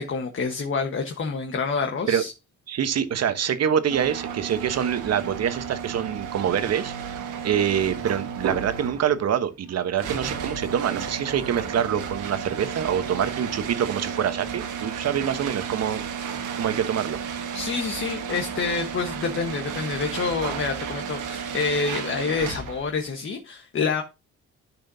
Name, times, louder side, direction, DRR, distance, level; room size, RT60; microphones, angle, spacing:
voice 1, 0.0-2.3 17.5-24.0, left 5 dB, 45° left, 1.3 m, -27 dB
voice 2, 2.7-6.9 7.4-16.0 16.5-17.2, right 8 dB, 55° right, 1.1 m, -25 dB
sound 1, 3.9-22.9, right 7 dB, 90° right, 1.6 m, -33 dB
10.5 x 6.2 x 2.7 m
cardioid pair, 90°, 30 cm